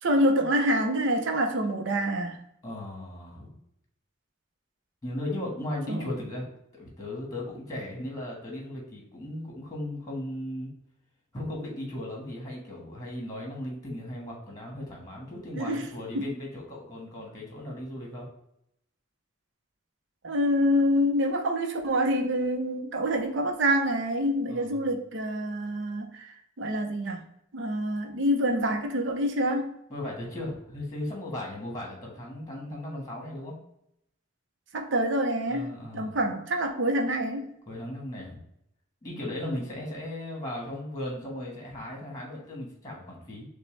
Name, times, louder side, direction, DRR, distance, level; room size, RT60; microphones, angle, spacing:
voice 1, 0.0-2.4 5.9-6.1 15.5-15.9 16.1-16.3 20.2-27.2 27.5-29.7 34.7-37.5, equal, 70° right, 3 dB, 0.6 m, -26 dB
voice 2, 2.6-3.5 5.0-6.5 6.7-10.7 11.3-18.3 24.5-24.8 29.9-33.5 35.5-36.1 37.7-38.4 39.0-43.5, left 1 dB, 20° left, -1 dB, 1.4 m, -36 dB
6.5 x 2.2 x 3.3 m, 0.77 s
head